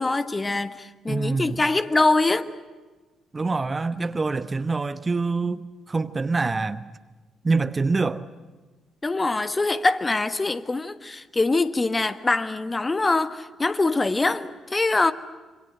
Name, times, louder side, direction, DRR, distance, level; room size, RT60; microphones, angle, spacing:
voice 1, 0.0-2.5 9.0-15.1, left 3 dB, 25° left, 1.4 m, -23 dB
voice 2, 1.1-1.6 3.3-6.9 7.4-8.2, right 3 dB, 30° right, 1.1 m, -25 dB
26.5 x 25.0 x 7.8 m
figure-of-eight pair, 40°, 0 cm